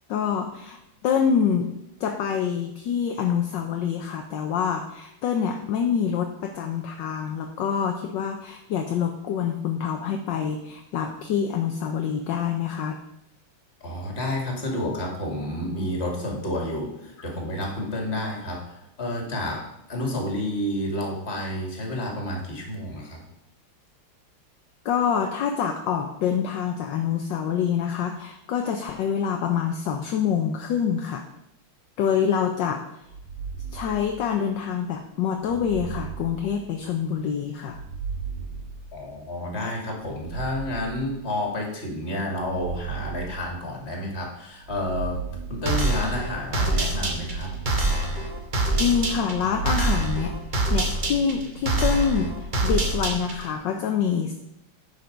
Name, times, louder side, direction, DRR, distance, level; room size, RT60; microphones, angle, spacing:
voice 1, 0.1-1.7 2.0-13.0 24.8-31.3 32.0-32.8 33.7-37.8 48.8-50.3 50.7-54.3, left 7 dB, 70° left, 5 dB, 1.2 m, -26 dB
voice 2, 13.8-23.2 38.9-45.2 45.5-47.5, left 1 dB, 30° left, 0 dB, 2.3 m, -30 dB
sound 1, 33.1-34.6 35.4-37.1 37.6-39.4 40.0-41.6 42.3-44.1 44.6-46.2 47.0-48.6 49.2-51.0 51.5-52.4, right 6 dB, 80° right, 3.1 m, -36 dB
sound 2, 45.7-53.5, right 2 dB, 30° right, 0.9 m, -26 dB
9.7 x 5.8 x 5.2 m, 0.82 s
omnidirectional pair, 2.4 m